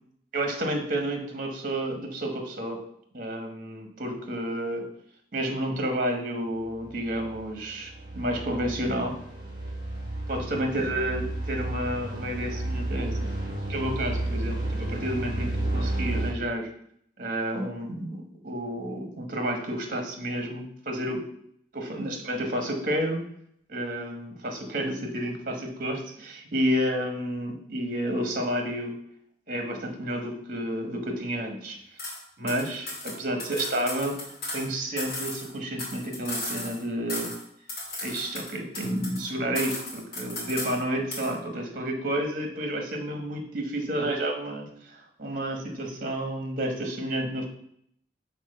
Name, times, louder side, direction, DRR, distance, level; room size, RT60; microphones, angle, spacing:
voice 1, 0.3-2.8 3.1-4.8 5.3-9.2 10.3-13.3 13.7-16.7 17.2-21.2 21.7-23.2 23.7-28.9 29.5-31.8 32.4-34.2 34.5-37.3 38.0-47.4, right 1 dB, 50° right, 3 dB, 1.3 m, -30 dB
sound 1, 6.6-16.3, right 1 dB, 20° right, 2.1 m, -32 dB
sound 2, 32.0-32.2 32.5-34.7 35.0-36.8 37.1-37.4 37.7-39.3 39.5-40.8 41.1-41.3, left 2 dB, 55° left, 2.4 m, -35 dB
5.9 x 4.1 x 5.6 m, 0.70 s
head